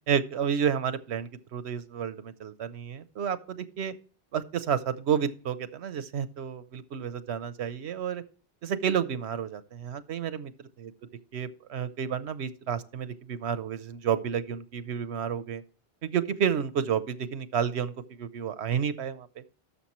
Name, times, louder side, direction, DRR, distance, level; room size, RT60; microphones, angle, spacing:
voice 1, 0.1-3.9 4.3-8.2 8.6-10.5 10.8-10.9 11.3-15.6 16.0-19.3, right 8 dB, 85° right, 13 dB, 1.0 m, -30 dB
12.5 x 6.8 x 3.1 m, 0.40 s
omnidirectional pair, 1.1 m